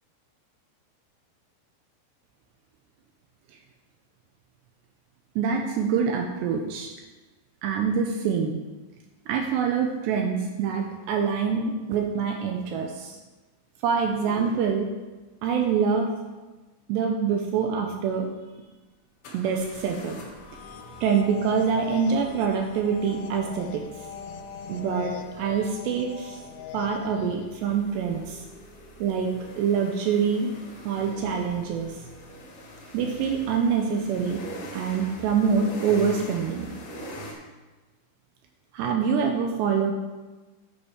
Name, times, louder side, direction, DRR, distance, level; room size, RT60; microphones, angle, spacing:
voice 1, 5.4-6.9 7.6-8.6 9.3-13.2 13.8-14.9 15.4-16.1 16.9-18.3 19.3-20.2 21.0-23.8 24.7-26.4 26.7-28.4 29.0-29.3 29.6-30.5 30.8-31.9 32.9-34.4 34.7-36.7 38.7-39.9, right 6 dB, 80° right, 2 dB, 2.7 m, -25 dB
sound 1, 19.2-37.3, equal, 55° left, 2.6 m, -44 dB
sound 2, 20.3-27.6, left 9 dB, 90° left, 3.1 m, -41 dB
8.7 x 8.1 x 5.0 m, 1.2 s
omnidirectional pair, 5.4 m